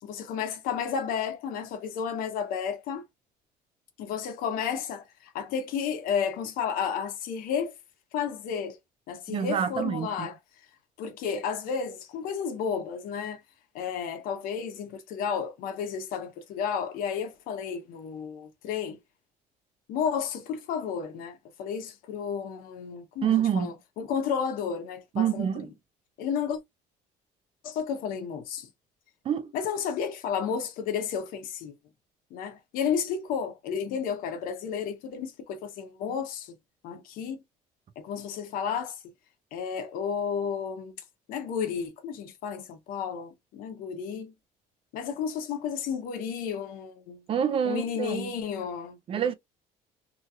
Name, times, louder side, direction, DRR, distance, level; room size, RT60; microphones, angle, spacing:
voice 1, 0.0-3.0 4.0-7.7 8.1-8.8 9.1-10.4 11.0-13.4 13.7-19.0 19.9-25.5 26.2-26.6 27.6-28.7 29.5-31.7 32.3-36.6 36.8-37.4 38.0-39.0 39.5-40.9 41.3-44.3 44.9-47.2 47.6-49.0, left 7 dB, 75° left, 0.9 m, -32 dB
voice 2, 9.3-10.3 23.2-23.7 25.2-25.7 29.3-29.5 47.3-48.3 49.1-49.3, right 8 dB, 40° right, 0.5 m, -27 dB
2.9 x 2.8 x 2.4 m
cardioid pair, 130°, 15 cm